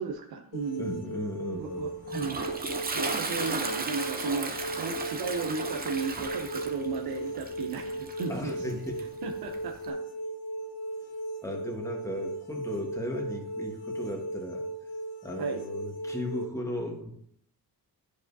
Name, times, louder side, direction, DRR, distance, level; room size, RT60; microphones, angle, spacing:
voice 1, 0.0-2.5 2.9-8.8 9.2-10.0 15.4-15.7, right 5 dB, 70° right, 2 dB, 0.7 m, -35 dB
sound 1, 0.5-16.4, right 1 dB, 80° left, 1.3 m, -37 dB
voice 2, 0.8-1.9 8.3-9.0 11.4-14.6 15.2-17.1, left 1 dB, 10° left, 1 dB, 1.3 m, -36 dB
Toilet flush, 1.6-9.9, right 3 dB, 25° right, 0.6 m, -36 dB
10.0 x 4.9 x 2.7 m, 0.68 s
wide cardioid pair, 135°, 38 cm